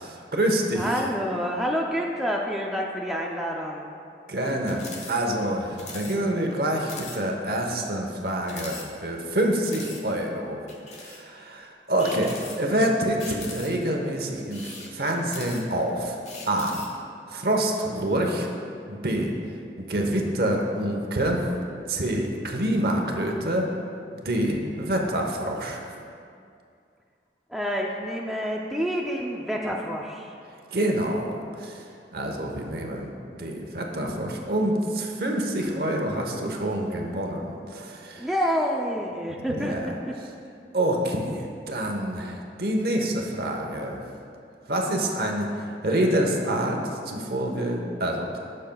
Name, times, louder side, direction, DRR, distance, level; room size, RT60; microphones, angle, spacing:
voice 1, 0.0-1.0 4.3-10.6 11.0-16.2 16.5-16.8 17.3-18.5 18.9-19.3 19.8-21.4 21.9-23.7 24.1-25.8 30.7-38.3 39.5-39.9 40.7-44.0 44.7-48.4, right 1 dB, 55° right, 1 dB, 1.0 m, -27 dB
voice 2, 0.7-3.9 27.5-30.3 38.2-40.2, equal, ahead, -2 dB, 0.4 m, -28 dB
sound 1, 4.6-5.1 5.4-5.5 5.8-6.2 6.5-6.6 6.8-7.2 7.6-7.7 8.4-9.3 9.6-10.0 10.7-11.2 12.0-12.8 13.2-13.9 14.4-15.8 16.2-17.0, left 3 dB, 40° left, 1.0 m, -40 dB
16.0 x 6.5 x 2.3 m, 2.4 s
head